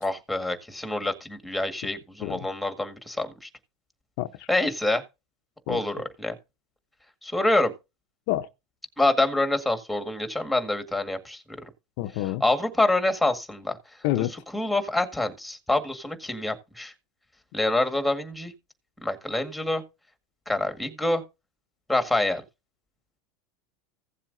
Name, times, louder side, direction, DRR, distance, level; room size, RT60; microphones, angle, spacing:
voice 1, 0.0-3.5 4.5-5.0 5.7-6.3 7.2-7.7 9.0-11.4 12.4-13.8 14.2-14.3 14.5-16.9 17.5-18.5 19.0-19.8 20.5-21.2 21.9-22.4, left 2 dB, ahead, 1.9 m, -26 dB
voice 2, 12.0-12.4 14.0-14.3, left 15 dB, 60° left, 0.7 m, -27 dB
16.0 x 7.4 x 2.7 m
supercardioid pair, 135°, 0 cm